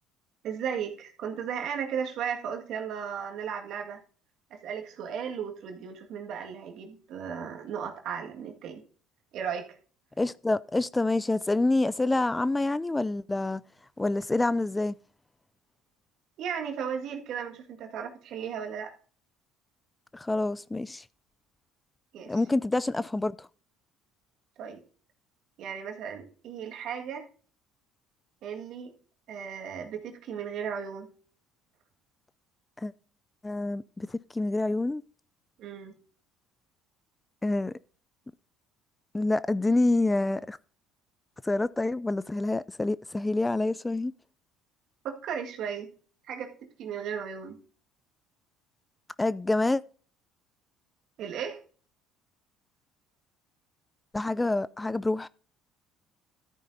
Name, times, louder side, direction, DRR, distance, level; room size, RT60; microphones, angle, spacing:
voice 1, 0.4-4.0 4.5-8.8 9.3-9.8 16.4-18.9 22.1-22.4 24.6-24.8 25.6-27.3 28.4-28.9 29.3-31.1 35.6-36.0 45.0-45.9 46.3-46.5 46.8-47.6 51.2-51.6, right 7 dB, 60° right, 1.8 m, -35 dB
voice 2, 10.2-13.6 14.0-14.9 20.1-21.0 22.3-23.5 32.8-32.9 33.4-35.0 37.4-37.7 39.1-40.6 41.4-44.1 49.2-49.8 54.1-55.3, left 2 dB, 15° left, 0.4 m, -27 dB
13.5 x 9.1 x 2.7 m
hypercardioid pair, 65°, 0 cm